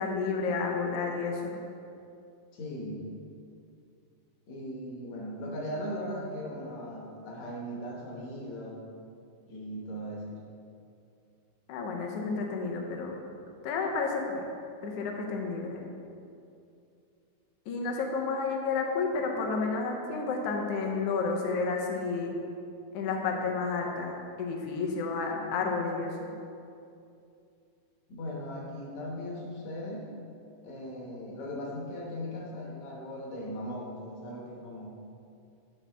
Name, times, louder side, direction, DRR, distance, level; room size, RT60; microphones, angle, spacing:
voice 1, 0.0-1.5 11.7-13.2 13.6-14.4 14.8-15.8 17.7-22.3 22.9-26.2, left 4 dB, 85° left, 1 dB, 1.3 m, -31 dB
voice 2, 2.5-3.1 4.5-8.8 9.5-10.4 28.1-30.1 30.6-35.0, equal, 65° left, -2 dB, 2.2 m, -38 dB
8.5 x 6.2 x 3.4 m, 2.5 s
omnidirectional pair, 3.7 m